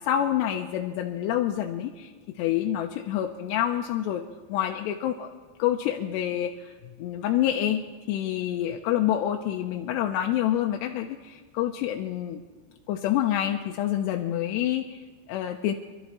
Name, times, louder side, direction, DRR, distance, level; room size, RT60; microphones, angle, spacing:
voice 1, 0.0-2.1 2.4-4.2 4.5-5.3 5.6-6.7 7.0-12.4 12.9-15.7, left 11 dB, 85° left, 3 dB, 2.7 m, -27 dB
26.5 x 13.5 x 3.1 m, 1.4 s
omnidirectional pair, 5.1 m